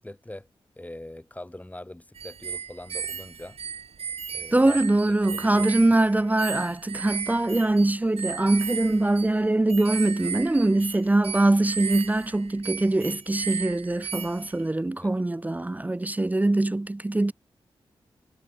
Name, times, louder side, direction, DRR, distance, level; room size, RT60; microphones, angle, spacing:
voice 1, 0.0-0.5 0.8-3.6 4.3-4.8 5.2-6.0 15.0-15.1, left 1 dB, 15° left, 1.6 m, -42 dB
sound 1, 2.2-14.6, right 7 dB, 75° right, 1.1 m, -36 dB
voice 2, 4.5-17.3, right 2 dB, 15° right, 0.3 m, -23 dB
cardioid pair, 45°, 10 cm